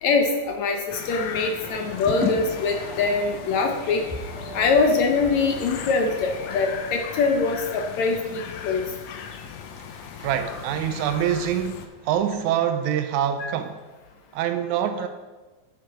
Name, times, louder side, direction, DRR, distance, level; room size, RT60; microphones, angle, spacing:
voice 1, 0.0-4.0 4.5-8.9, left 4 dB, 70° left, 3 dB, 1.8 m, -23 dB
sound 1, 0.9-11.9, left 7 dB, 90° left, 1.5 m, -38 dB
sound 2, 1.6-6.7, left 2 dB, 5° right, 1.2 m, -36 dB
voice 2, 10.2-13.8 14.3-15.1, right 9 dB, 85° right, 8 dB, 1.7 m, -25 dB
11.5 x 7.1 x 4.9 m, 1.2 s
omnidirectional pair, 4.1 m